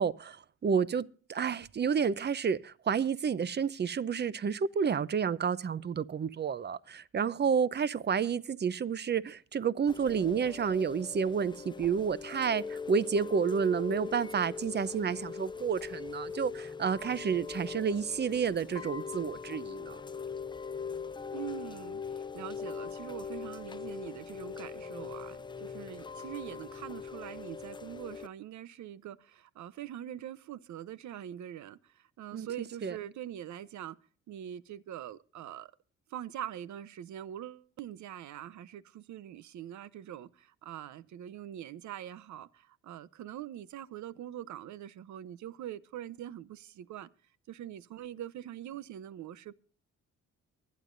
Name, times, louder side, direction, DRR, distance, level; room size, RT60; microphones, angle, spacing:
voice 1, 0.0-20.0 32.3-32.5 32.8-33.0, right 6 dB, 35° right, 0.7 m, -30 dB
Chime / Rain, 9.9-28.3, left 5 dB, 15° left, 0.5 m, -41 dB
voice 2, 21.3-34.0 34.3-35.7 36.1-47.1 47.5-49.5, right 11 dB, 70° right, 0.9 m, -43 dB
24.0 x 9.4 x 2.6 m
cardioid pair, 90°, 30 cm